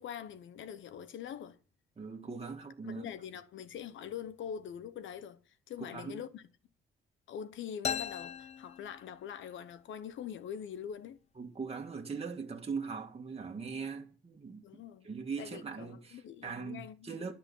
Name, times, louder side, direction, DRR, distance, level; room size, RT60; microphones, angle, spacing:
voice 1, 0.0-1.6 2.8-6.4 7.3-11.2 14.6-15.1 15.4-17.1, left 8 dB, 75° left, 1.1 m, -43 dB
voice 2, 2.0-3.1 5.9-6.2 11.4-17.3, right 5 dB, 30° right, 2.0 m, -41 dB
sound 1, 7.8-9.5, left 7 dB, 35° left, 0.5 m, -38 dB
12.0 x 5.9 x 8.5 m
cardioid pair, 90°, 20 cm